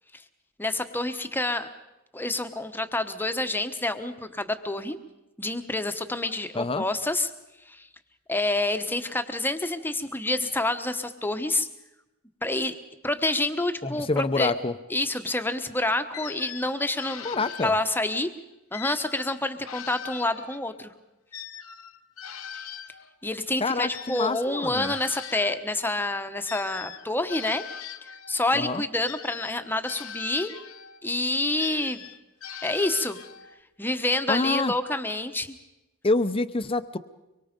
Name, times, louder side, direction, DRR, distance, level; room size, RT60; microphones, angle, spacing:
voice 1, 0.6-1.7 2.1-5.0 5.4-7.3 7.7-7.9 8.3-11.7 12.4-12.8 13.0-14.5 14.9-17.3 17.6-18.3 18.7-20.9 23.2-27.6 28.3-30.5 31.0-32.0 32.6-33.2 33.8-35.6, left 2 dB, 10° left, 8 dB, 1.1 m, -28 dB
voice 2, 6.5-6.9 13.8-14.7 17.2-17.7 23.6-24.9 28.5-28.8 34.3-34.7 36.0-37.0, left 3 dB, 25° left, 11 dB, 0.8 m, -26 dB
sound 1, 16.1-18.2 18.7-20.8 21.3-25.7 26.5-28.4 29.0-31.0 31.6-33.6, left 9 dB, 90° left, 1.1 m, -41 dB
24.5 x 23.5 x 5.3 m, 0.97 s
head